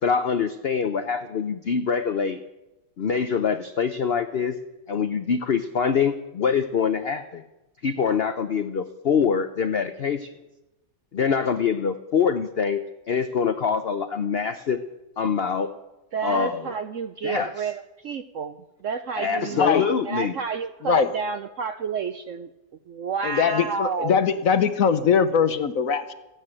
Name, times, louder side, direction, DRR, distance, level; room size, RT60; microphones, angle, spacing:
voice 1, 0.0-2.4 3.0-4.6 4.9-7.4 7.8-10.3 11.1-14.8 15.2-15.7 16.2-16.7 17.2-17.7 19.2-20.3, left 6 dB, 75° left, 10 dB, 0.5 m, -24 dB
voice 2, 16.1-18.6 18.8-22.5 22.9-24.2, right 5 dB, 65° right, 10 dB, 0.8 m, -30 dB
voice 3, 19.5-19.9 20.8-21.1 23.2-26.1, left 6 dB, 60° left, 11 dB, 1.0 m, -21 dB
14.5 x 10.0 x 8.9 m, 1.0 s
omnidirectional pair, 1.9 m